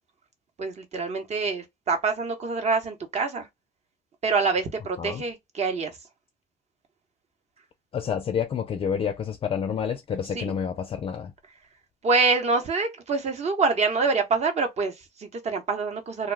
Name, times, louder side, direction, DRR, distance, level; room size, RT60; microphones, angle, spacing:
voice 1, 0.6-3.5 4.2-6.0 10.3-10.5 12.0-16.3, right 4 dB, 40° right, 0.9 m, -26 dB
voice 2, 7.9-11.3, left 7 dB, 35° left, 0.4 m, -29 dB
2.3 x 2.2 x 3.2 m
cardioid pair, 110°, 17 cm